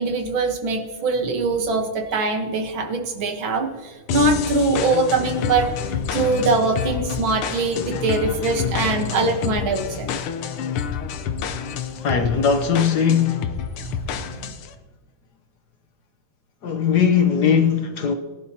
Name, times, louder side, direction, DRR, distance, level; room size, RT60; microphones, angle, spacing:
voice 1, 0.0-5.7 6.1-10.1 13.8-14.1 14.4-14.6, right 3 dB, 70° right, 2.0 m, -22 dB
sound 1, 4.1-14.7, left 7 dB, 85° left, 1.7 m, -28 dB
voice 2, 12.0-13.5 16.6-18.1, left 7 dB, 60° left, 1.2 m, -19 dB
21.0 x 11.0 x 2.9 m
omnidirectional pair, 2.4 m